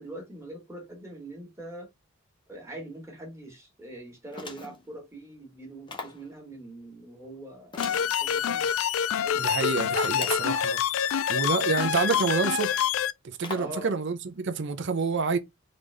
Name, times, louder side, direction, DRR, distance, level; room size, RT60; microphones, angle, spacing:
voice 1, 0.0-1.9 2.5-7.8 8.0-8.7 9.1-9.5 13.5-13.9, right 1 dB, 15° right, 1.6 m, -43 dB
sound 1, 4.3-4.9 5.9-6.3 7.7-8.7 10.0-10.7 11.5-11.6 12.1-12.5 13.4-13.8, left 3 dB, 25° left, 1.1 m, -40 dB
sound 2, 7.8-13.1, left 9 dB, 75° left, 0.3 m, -26 dB
voice 2, 9.4-12.9 13.2-15.4, right 4 dB, 60° right, 0.6 m, -28 dB
3.9 x 3.4 x 3.4 m
head